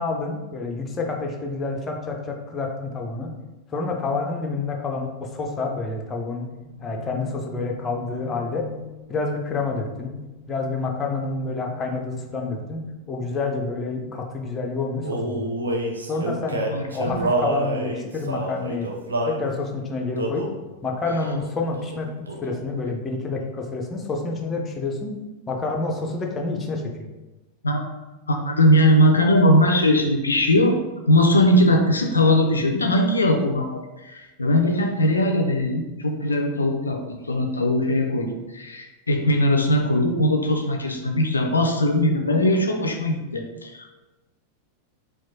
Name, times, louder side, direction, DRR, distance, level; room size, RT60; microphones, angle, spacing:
voice 1, 0.0-3.4 3.7-6.5 6.8-8.7 9.1-10.2 10.5-15.5 16.0-16.6 16.9-18.9 19.3-20.4 20.8-25.2 25.5-27.1, left 3 dB, 20° left, 2 dB, 0.5 m, -28 dB
sound 1, 6.1-13.9, left 3 dB, 35° right, 0.9 m, -43 dB
Male singing, 15.0-19.4 20.2-20.6 21.2-21.5 21.8-22.7, right 2 dB, 75° right, 0.5 m, -27 dB
voice 2, 16.7-17.2 27.6-27.8 28.3-30.8 31.1-43.9, left 1 dB, 75° left, 3 dB, 0.3 m, -20 dB
4.4 x 2.3 x 2.6 m, 1.1 s
figure-of-eight pair, 90°, 0 cm